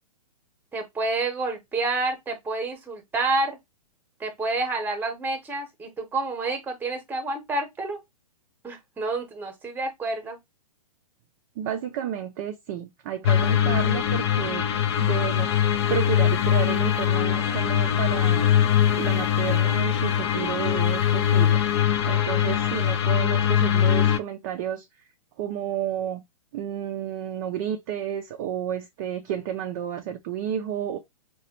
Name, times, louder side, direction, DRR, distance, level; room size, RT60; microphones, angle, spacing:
voice 1, 0.7-3.6 4.2-8.0 8.6-10.4, right 3 dB, 10° right, 0.9 m, -29 dB
voice 2, 11.6-14.6 15.0-15.5 15.9-18.5 19.0-21.6 22.1-24.9 25.4-26.2 26.5-31.0, right 10 dB, 30° right, 0.4 m, -31 dB
sound 1, 13.2-24.2, left 10 dB, 45° left, 0.5 m, -22 dB
4.7 x 2.2 x 2.9 m
figure-of-eight pair, 115°, 20 cm